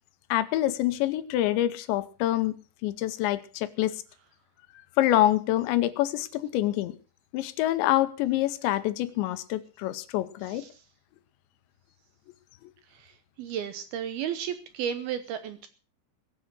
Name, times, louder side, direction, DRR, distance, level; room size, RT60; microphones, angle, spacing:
voice 1, 0.3-2.6 2.8-3.9 5.0-7.0 7.3-10.6, left 14 dB, 80° left, 13 dB, 3.1 m, -26 dB
voice 2, 10.4-10.8 12.9-15.7, right 9 dB, 70° right, 10 dB, 2.5 m, -34 dB
21.0 x 7.6 x 6.2 m, 0.38 s
omnidirectional pair, 5.2 m